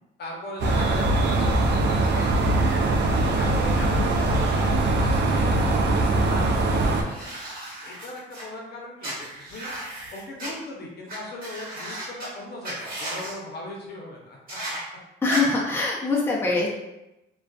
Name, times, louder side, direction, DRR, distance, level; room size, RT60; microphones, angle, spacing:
voice 1, 0.2-2.6 3.4-7.4 7.8-9.7 10.1-14.6, left 1 dB, 55° left, -1 dB, 0.7 m, -38 dB
sound 1, 0.6-7.0, right 2 dB, 60° right, 0.4 m, -22 dB
sound 2, 7.0-8.4 9.0-10.5 11.1-11.2 11.4-12.3 12.6-13.3 14.5-14.8 15.3-15.4, right 1 dB, 45° right, 1.2 m, -35 dB
voice 2, 15.2-16.7, left 3 dB, 10° left, -4 dB, 0.5 m, -23 dB
2.4 x 2.3 x 2.3 m, 0.93 s
cardioid pair, 90°, 20 cm